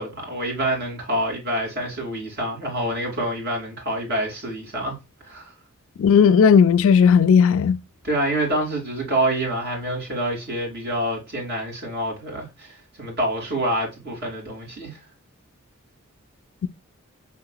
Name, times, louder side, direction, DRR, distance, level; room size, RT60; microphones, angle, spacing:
voice 1, 0.0-5.0 5.2-5.5 8.0-15.0, right 1 dB, 50° right, 3.0 m, -27 dB
voice 2, 6.0-7.8 16.6-16.7, left 6 dB, 60° left, 0.4 m, -15 dB
5.8 x 3.9 x 2.3 m
head